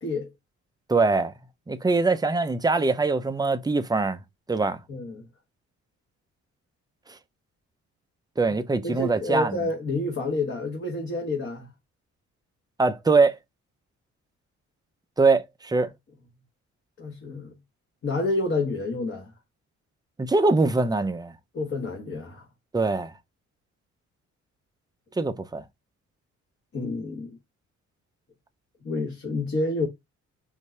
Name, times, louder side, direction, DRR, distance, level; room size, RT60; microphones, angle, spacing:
voice 1, 0.9-1.3 1.7-4.2 4.5-4.8 8.4-9.6 12.8-13.4 15.2-15.9 20.2-21.3 22.7-23.1 25.2-25.6, right 3 dB, 15° right, 0.6 m, -22 dB
voice 2, 4.9-5.2 8.8-11.7 17.0-17.5 18.0-19.3 21.5-22.5 26.7-27.4 28.8-29.9, left 2 dB, 45° left, 1.6 m, -29 dB
5.3 x 2.7 x 3.3 m
cardioid pair, 90°, 30 cm